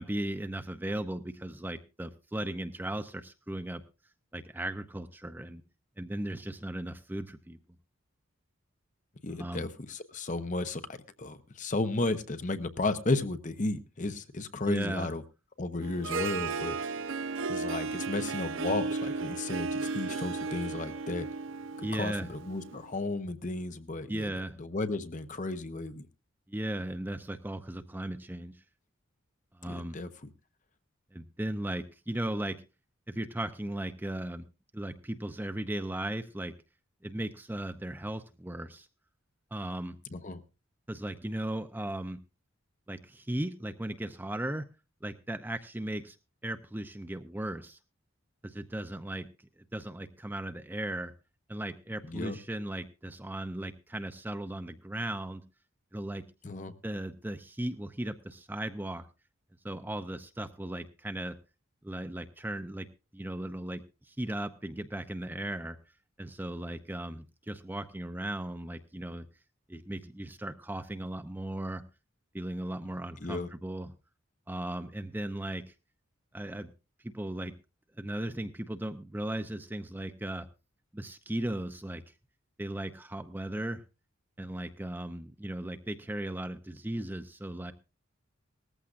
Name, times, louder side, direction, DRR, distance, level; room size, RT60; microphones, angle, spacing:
voice 1, 0.0-3.8 4.3-5.6 6.0-7.6 9.3-9.6 14.7-15.1 21.8-22.3 24.1-24.5 26.5-28.5 29.6-30.0 31.1-32.6 33.1-34.4 34.7-36.5 37.0-38.9 39.5-40.0 40.9-42.2 42.9-44.6 45.0-46.2 46.4-47.8 48.4-49.3 49.7-51.1 51.5-55.4 55.9-56.2 56.8-59.1 59.6-61.4 61.8-62.9 63.1-65.8 66.2-69.3 69.7-71.8 72.3-73.9 74.5-75.7 76.3-76.7 77.1-77.5 78.0-80.5 80.9-82.0 82.6-83.8 84.4-87.7, right 1 dB, 10° right, 9 dB, 0.6 m, -36 dB
voice 2, 9.2-15.2 15.6-16.8 17.5-21.3 21.8-26.1 29.6-30.3 40.1-40.4 52.0-52.4 56.4-56.7 73.2-73.5, left 2 dB, 40° left, 10 dB, 0.8 m, -34 dB
Harp, 15.8-22.9, right 4 dB, 65° right, 0.6 m, -35 dB
18.5 x 14.5 x 2.5 m, 0.29 s
head